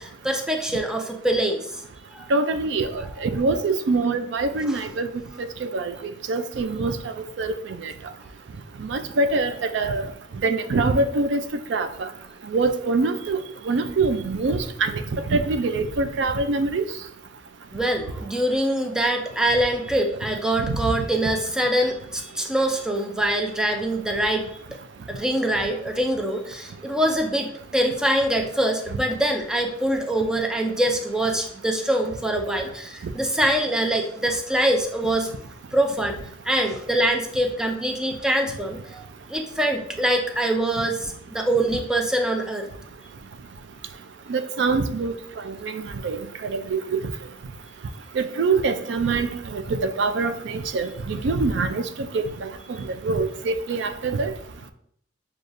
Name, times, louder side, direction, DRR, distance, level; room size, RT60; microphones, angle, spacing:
voice 1, 0.0-1.8 2.1-2.3 4.7-4.8 17.7-24.6 25.1-35.4 35.7-36.2 36.4-42.7, right 1 dB, 5° right, 3 dB, 0.4 m, -24 dB
voice 2, 2.3-2.9 3.2-5.1 5.6-5.9 6.3-7.0 7.4-7.5 7.8-7.9 8.8-10.0 10.4-11.4 11.7-12.1 12.5-13.4 13.7-16.8 20.7-20.8 44.3-45.1 45.6-47.0 48.2-51.8 52.1-52.5 53.0-54.3, right 3 dB, 70° right, 9 dB, 0.4 m, -24 dB
6.4 x 2.3 x 2.6 m, 0.68 s
head